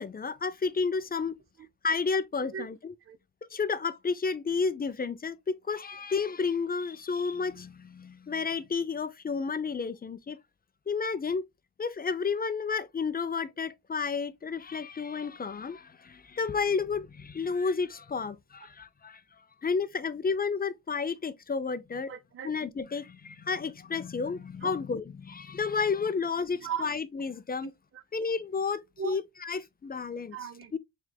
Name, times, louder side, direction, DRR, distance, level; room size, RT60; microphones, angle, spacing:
voice 1, 0.0-1.4 1.8-2.9 3.5-10.4 10.9-11.5 11.8-19.2 19.6-22.1 22.4-27.7 28.1-30.4 30.7-30.8, left 5 dB, 25° left, 0.4 m, -31 dB
voice 2, 22.1-22.5 24.6-24.8 26.6-26.9 27.6-28.0 29.0-29.2 30.3-30.7, right 8 dB, 35° right, 0.5 m, -37 dB
4.7 x 3.2 x 2.2 m
cardioid pair, 90°, 38 cm